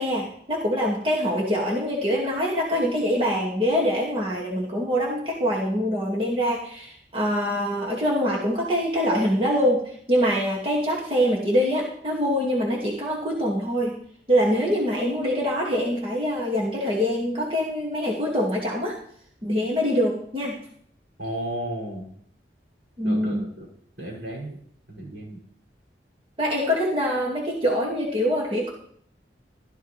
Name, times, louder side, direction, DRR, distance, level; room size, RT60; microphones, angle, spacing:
voice 1, 0.0-14.0 14.3-18.9 19.4-20.6 23.0-23.4 26.4-28.7, equal, 30° right, -3 dB, 2.1 m, -24 dB
voice 2, 21.2-22.1 23.0-23.7 24.0-24.6 24.9-25.4, right 1 dB, 75° right, -2 dB, 6.7 m, -33 dB
15.5 x 12.5 x 3.3 m, 0.64 s
head